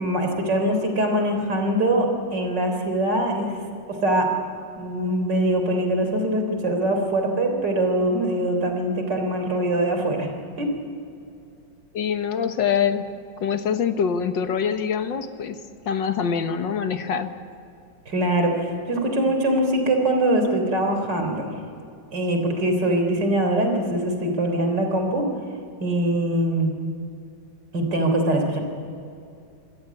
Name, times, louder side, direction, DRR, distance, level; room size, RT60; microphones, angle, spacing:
voice 1, 0.0-3.5 3.9-4.3 4.8-10.3 10.6-10.7 18.1-21.5 22.1-25.3 25.8-26.7 27.7-28.6, right 1 dB, 65° right, 4 dB, 4.4 m, -23 dB
voice 2, 11.9-13.1 13.4-15.6 15.9-17.4, left 7 dB, 80° left, 8 dB, 2.0 m, -24 dB
26.5 x 17.0 x 8.5 m, 2.5 s
omnidirectional pair, 2.0 m